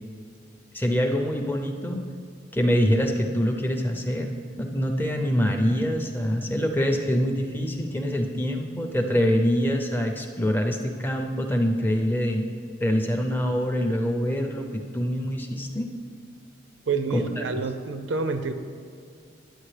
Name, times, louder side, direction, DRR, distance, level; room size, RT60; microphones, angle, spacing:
voice 1, 0.7-2.1 2.5-12.4 12.8-15.9 17.1-17.4, equal, 10° left, 3 dB, 0.5 m, -25 dB
voice 2, 16.9-18.5, right 4 dB, 75° right, 9 dB, 0.5 m, -28 dB
10.0 x 8.2 x 3.3 m, 2.4 s
head